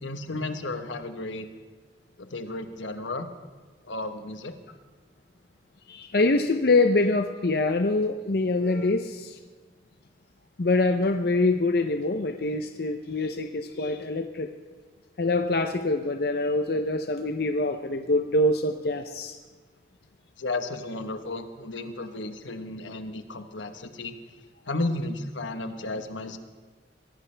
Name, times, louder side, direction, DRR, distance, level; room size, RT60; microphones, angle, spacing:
voice 1, 0.0-1.5 2.2-3.3 3.8-4.5 20.4-24.2 24.7-26.4, left 2 dB, 85° left, 8 dB, 1.2 m, -33 dB
voice 2, 5.9-9.4 10.6-14.5 15.2-19.4, left 2 dB, 55° left, 6 dB, 0.6 m, -25 dB
23.5 x 16.5 x 3.4 m, 1.4 s
head